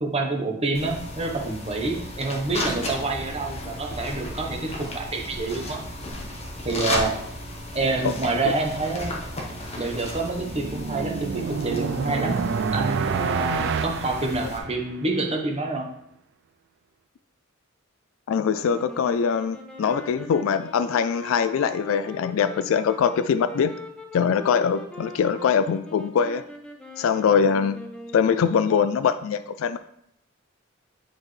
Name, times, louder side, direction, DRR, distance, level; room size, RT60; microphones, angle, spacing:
voice 1, 0.0-5.8 6.6-7.1 7.7-9.2 9.8-12.4 12.7-15.9, right 3 dB, 30° right, 1 dB, 1.0 m, -27 dB
sound 1, 0.7-14.6, left 1 dB, 30° left, 1.1 m, -34 dB
sound 2, 10.1-15.1, right 6 dB, 60° right, 0.3 m, -29 dB
voice 2, 18.3-23.7 24.1-26.4 27.0-27.8 28.1-29.8, left 7 dB, 75° left, 11 dB, 0.3 m, -22 dB
sound 3, 18.6-28.6, left 1 dB, 5° left, 0.7 m, -41 dB
9.5 x 4.5 x 3.2 m, 0.76 s
head